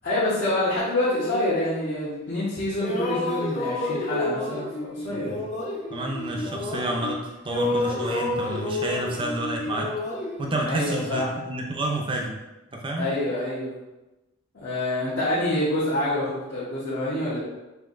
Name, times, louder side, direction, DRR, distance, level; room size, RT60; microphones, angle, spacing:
voice 1, 0.0-5.4 10.7-11.3 13.0-13.7 14.5-17.4, left 1 dB, 55° left, -10 dB, 1.0 m, -26 dB
sound 1, 1.1-2.5 2.8-7.2 7.5-11.3, left 2 dB, 35° left, 0.6 m, -30 dB
voice 2, 5.1-5.5 5.9-7.2 7.4-9.9 10.4-12.3 12.7-13.1, right 1 dB, 25° right, 0 dB, 0.5 m, -29 dB
5.7 x 2.7 x 2.5 m, 1.0 s
head